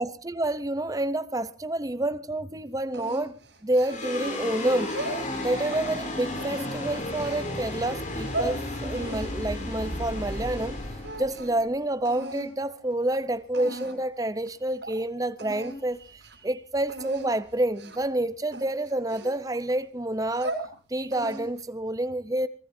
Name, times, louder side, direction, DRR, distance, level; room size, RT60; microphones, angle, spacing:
voice 1, 0.0-4.9 5.4-10.8 11.2-20.6 20.9-22.5, right 1 dB, 20° right, 0.7 m, -28 dB
sound 1, 2.9-4.3 4.8-5.9 6.3-7.4 8.0-8.5 8.9-10.7 11.0-11.6 12.0-12.5 13.1-13.2 13.5-14.1 14.4-14.5 14.8-15.0 15.4-15.8 16.1-16.3 16.9-17.3 17.8-18.1 18.5-19.7 20.2-20.7 21.1-21.6, right 2 dB, 90° right, 7.8 m, -37 dB
sound 2, 3.9-12.4, left 1 dB, 45° left, 4.1 m, -34 dB
24.0 x 20.5 x 2.7 m
head